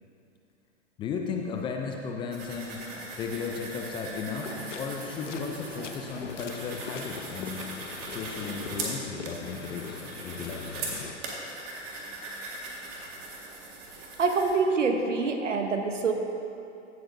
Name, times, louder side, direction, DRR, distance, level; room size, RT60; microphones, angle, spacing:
voice 1, 1.0-2.8 3.2-7.7 8.1-11.0, left 5 dB, 15° left, 2 dB, 0.4 m, -35 dB
sound 1, 2.3-14.5, right 3 dB, 35° right, 1.9 m, -40 dB
sound 2, 4.4-11.2, left 6 dB, 80° left, 0.8 m, -42 dB
voice 2, 14.2-16.1, right 4 dB, 90° right, 4 dB, 1.1 m, -25 dB
15.0 x 7.5 x 2.6 m, 2.7 s
hypercardioid pair, 115°, 36 cm